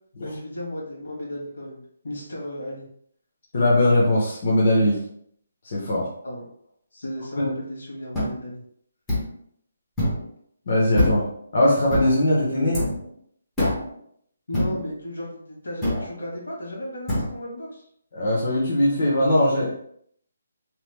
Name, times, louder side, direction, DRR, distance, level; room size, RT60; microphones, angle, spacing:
voice 1, 0.2-2.9 6.2-6.5 6.9-8.6 14.5-17.8, left 1 dB, 75° left, -2 dB, 1.5 m, -34 dB
voice 2, 3.5-5.0 5.6-6.1 7.4-7.5 10.7-11.2 11.5-12.8 18.1-19.8, left 1 dB, 40° left, -5 dB, 0.8 m, -20 dB
sound 1, 8.1-8.3 9.1-9.3 10.0-10.3 11.0-11.4 11.9-12.2 12.7-13.0 13.6-13.9 14.5-14.9 15.8-16.1 17.1-17.3, left 1 dB, 5° left, 0.7 m, -24 dB
3.0 x 2.3 x 3.3 m, 0.66 s
hypercardioid pair, 175°, 0 cm